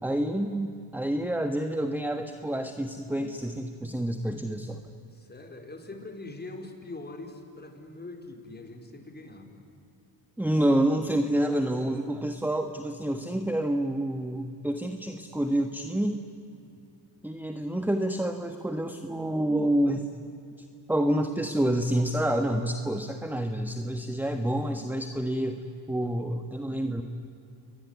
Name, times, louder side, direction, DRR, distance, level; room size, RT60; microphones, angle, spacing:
voice 1, 0.0-4.8 10.4-16.2 17.2-20.1 20.9-27.0, right 1 dB, 5° right, 6 dB, 1.4 m, -28 dB
voice 2, 5.1-9.6 16.8-16.9, left 2 dB, 20° left, 3 dB, 4.7 m, -43 dB
28.5 x 21.5 x 9.7 m, 2.7 s
cardioid pair, 90°, 44 cm